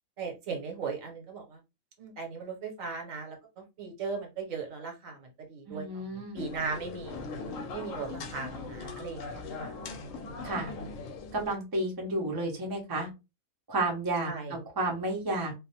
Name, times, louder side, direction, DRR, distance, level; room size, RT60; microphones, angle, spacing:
voice 1, 0.2-1.6 2.0-7.2 7.7-9.7 10.0-10.2 14.2-14.6, right 4 dB, 75° right, 1 dB, 1.2 m, -38 dB
voice 2, 5.7-6.4 10.4-10.7 11.3-13.1 13.7-15.5, right 2 dB, 25° right, 0 dB, 0.5 m, -31 dB
sound 1, 6.4-11.5, left 3 dB, 75° left, 0.9 m, -40 dB
2.5 x 2.0 x 2.7 m, 0.26 s
omnidirectional pair, 1.4 m